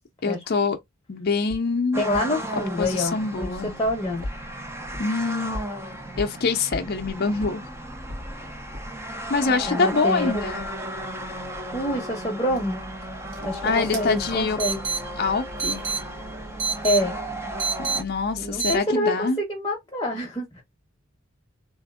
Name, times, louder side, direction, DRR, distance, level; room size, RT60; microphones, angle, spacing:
voice 1, 0.2-0.8 1.1-2.0 2.5-3.7 5.0-5.6 6.2-7.7 9.3-10.7 13.6-14.6 15.2-15.8 17.8-19.4, left 4 dB, 50° left, 0.5 m, -25 dB
sound 1, 1.5-1.6 2.1-2.2 2.8-2.9 3.4-3.5 3.9-4.3 4.9-5.0 5.5-5.6 6.2-6.3 6.7-6.8 7.4-7.5 8.1-8.2 8.7-8.8, left 1 dB, 80° right, 1.9 m, -33 dB
sound 2, 1.9-18.0, right 1 dB, 10° right, 0.5 m, -35 dB
voice 2, 2.0-4.3 9.6-10.4 11.7-12.8 13.4-14.8 16.8-17.1 18.4-20.6, left 1 dB, 20° left, 0.8 m, -26 dB
sound 3, 12.5-18.8, right 5 dB, 60° right, 1.2 m, -32 dB
3.4 x 2.6 x 2.3 m
head